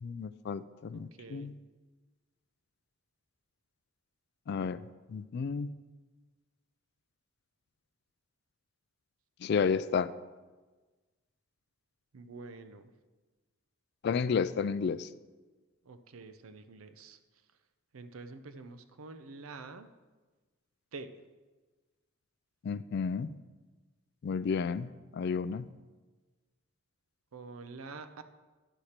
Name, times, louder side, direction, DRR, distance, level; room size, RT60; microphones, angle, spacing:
voice 1, 0.0-1.6 4.5-4.8 5.1-5.7 9.4-10.1 14.0-15.1 22.6-23.3 24.2-25.7, left 6 dB, 50° left, 15 dB, 0.3 m, -32 dB
voice 2, 0.9-1.5 12.1-12.9 15.8-17.2 17.9-19.9 20.9-21.1 27.3-28.2, right 3 dB, 90° right, 10 dB, 0.6 m, -47 dB
10.0 x 4.3 x 6.6 m, 1.3 s
head